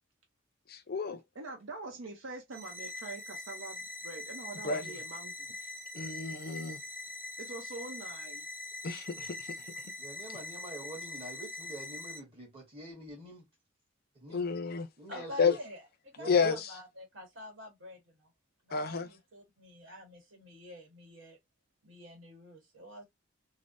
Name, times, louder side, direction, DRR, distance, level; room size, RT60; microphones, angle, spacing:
voice 1, 0.7-1.2 4.6-4.9 5.9-6.8 8.8-9.7 14.3-14.9 15.4-15.5 16.2-16.7 18.7-19.1, left 5 dB, 50° left, 0.5 m, -30 dB
voice 2, 1.4-5.5 7.4-8.5, right 3 dB, 90° right, 0.6 m, -44 dB
sound 1, 2.5-12.2, left 2 dB, 10° right, 1.1 m, -43 dB
voice 3, 10.0-13.5 14.1-14.5 15.0-15.6 16.2-16.6, right 2 dB, 30° right, 1.3 m, -45 dB
voice 4, 15.1-18.3 18.6-21.4 21.8-23.0, left 1 dB, 70° right, 1.3 m, -48 dB
3.2 x 2.0 x 2.5 m
head